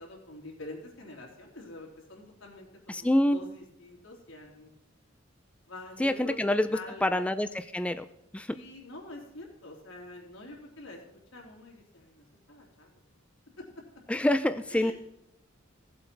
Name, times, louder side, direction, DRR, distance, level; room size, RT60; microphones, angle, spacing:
voice 1, 0.0-4.7 5.7-7.2 8.5-11.0 11.3-12.9 13.6-13.8 14.7-14.9, left 2 dB, 90° left, 0 dB, 3.2 m, -46 dB
voice 2, 2.9-3.4 6.0-6.7 7.0-8.1 8.3-8.6 14.1-14.9, left 1 dB, 5° left, 10 dB, 0.3 m, -26 dB
16.0 x 7.7 x 4.5 m, 0.82 s
head